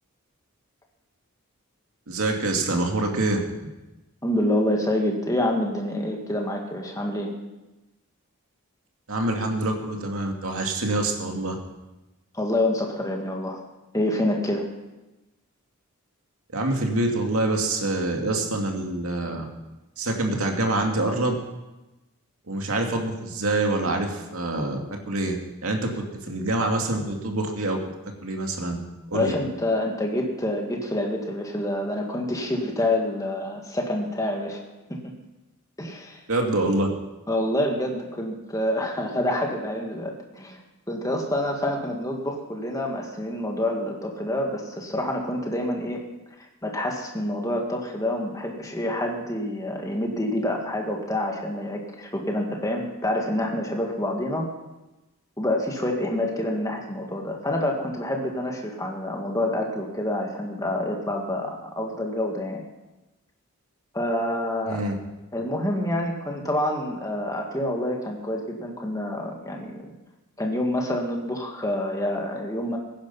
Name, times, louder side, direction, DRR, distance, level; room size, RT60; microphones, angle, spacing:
voice 1, 2.1-3.4 9.1-11.6 16.5-19.5 20.0-21.4 22.5-25.4 25.6-27.8 28.2-28.8 29.1-29.3 36.3-36.9 64.7-64.9, right 2 dB, 75° right, 2 dB, 2.4 m, -26 dB
voice 2, 4.2-7.3 12.3-13.6 13.9-14.7 29.1-34.6 34.9-35.1 35.8-36.2 37.3-40.6 40.9-46.0 46.4-54.5 55.4-62.6 63.9-64.8 65.3-69.8 70.4-72.8, left 1 dB, 15° left, 1 dB, 2.0 m, -27 dB
17.0 x 10.5 x 5.6 m, 1.0 s
head